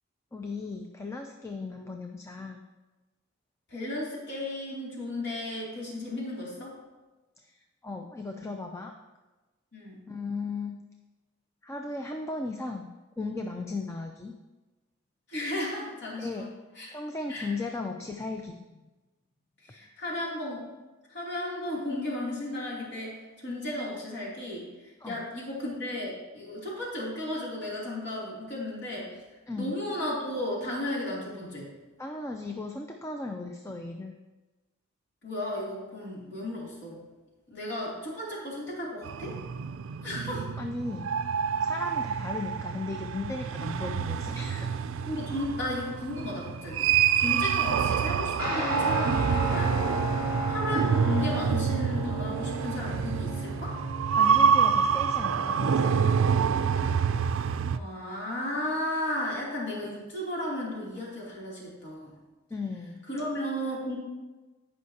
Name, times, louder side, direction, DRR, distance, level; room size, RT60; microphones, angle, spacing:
voice 1, 0.3-2.6 7.4-8.9 10.1-10.8 11.6-12.9 13.2-14.3 16.2-16.5 16.9-18.8 25.0-25.2 29.5-29.7 32.0-34.1 40.6-41.1 41.6-44.7 54.1-56.1 62.5-63.0, left 3 dB, 15° left, 4 dB, 0.4 m, -36 dB
voice 2, 3.7-6.7 9.7-10.0 15.3-16.5 16.8-16.9 17.3-17.5 19.6-20.6 21.1-29.1 29.6-31.7 35.2-37.0 37.5-39.4 40.0-40.4 45.1-50.1 50.5-53.8 57.7-62.1 63.1-64.0, left 1 dB, 55° left, -5 dB, 2.9 m, -34 dB
sound 1, 39.0-57.8, right 7 dB, 75° right, 0.4 m, -27 dB
Guitar, 48.4-57.2, right 1 dB, 90° left, 2.9 m, -34 dB
16.0 x 5.4 x 2.8 m, 1.2 s
head